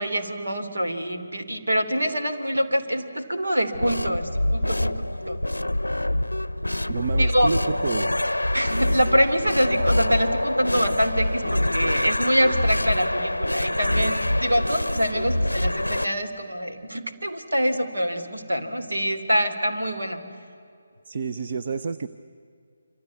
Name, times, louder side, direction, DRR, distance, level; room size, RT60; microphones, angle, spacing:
voice 1, 0.0-5.4 7.2-7.5 8.5-20.3, equal, 75° right, 7 dB, 2.9 m, -25 dB
sound 1, 3.7-16.1, left 1 dB, 90° left, 0.6 m, -25 dB
voice 2, 6.9-8.2 21.1-22.1, right 5 dB, 45° right, 11 dB, 0.8 m, -29 dB
26.5 x 25.5 x 8.4 m, 2.4 s
figure-of-eight pair, 150°, 0 cm